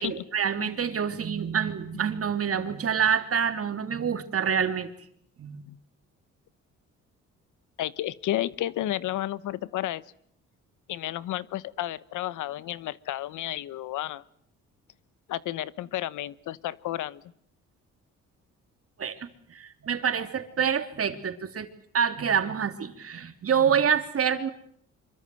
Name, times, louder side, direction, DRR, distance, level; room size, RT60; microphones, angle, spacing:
voice 1, 0.0-4.9 5.4-5.7 19.0-19.2 19.5-21.7 21.9-24.5, right 7 dB, 50° right, 8 dB, 3.3 m, -27 dB
voice 2, 7.8-10.0 10.9-14.2 15.3-17.2, left 14 dB, 85° left, 18 dB, 1.1 m, -32 dB
25.5 x 23.5 x 7.9 m, 0.68 s
cardioid pair, 90°, 30 cm